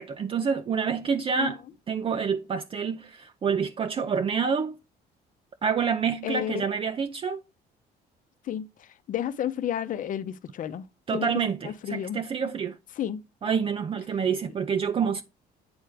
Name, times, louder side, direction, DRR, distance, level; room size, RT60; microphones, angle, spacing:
voice 1, 0.0-1.6 1.9-4.7 5.6-7.4 11.1-12.8 13.4-15.2, right 6 dB, 30° right, 0.5 m, -27 dB
voice 2, 6.2-6.6 8.4-10.8 11.1-11.3 11.6-12.5 13.0-13.2, left 10 dB, 50° left, 0.8 m, -32 dB
8.8 x 3.4 x 5.0 m
cardioid pair, 110°, 17 cm